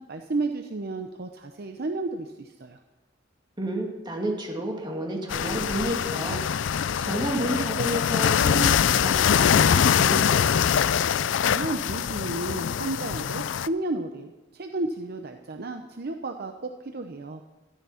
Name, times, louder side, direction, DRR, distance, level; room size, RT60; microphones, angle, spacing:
voice 1, 0.0-2.8 11.4-17.4, right 2 dB, 55° right, 5 dB, 0.7 m, -32 dB
voice 2, 3.6-10.5, right 1 dB, 25° right, 0 dB, 2.4 m, -31 dB
sound 1, 5.3-13.7, left 8 dB, 70° left, 0.4 m, -23 dB
12.5 x 12.0 x 5.7 m, 1.1 s
head